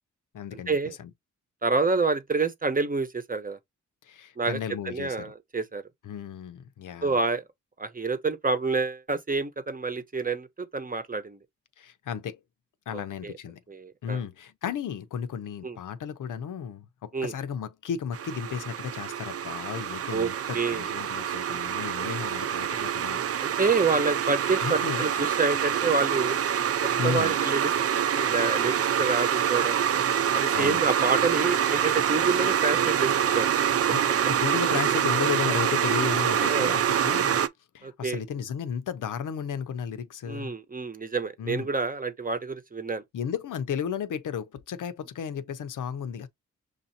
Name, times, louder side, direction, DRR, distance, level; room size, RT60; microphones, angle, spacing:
voice 1, 0.3-1.1 4.0-5.3 6.0-7.2 11.8-12.4 12.9-13.6 14.0-23.2 24.6-25.1 27.0-27.3 30.5-30.8 33.9-37.4 37.7-40.5 41.4-41.7 43.1-46.3, left 8 dB, 75° left, 0.7 m, -34 dB
voice 2, 1.6-3.6 4.4-4.6 4.8-5.8 7.0-7.4 7.8-11.4 12.9-13.3 13.7-14.2 15.6-15.8 17.1-17.3 20.1-21.0 23.4-26.4 26.8-27.7 28.1-29.8 30.3-33.5 34.2-34.3 36.4-36.8 37.8-38.2 40.3-43.0, right 4 dB, 25° right, 0.9 m, -28 dB
sound 1, 18.1-37.5, right 9 dB, 50° right, 0.5 m, -26 dB
6.5 x 2.7 x 2.8 m
cardioid pair, 85°, 31 cm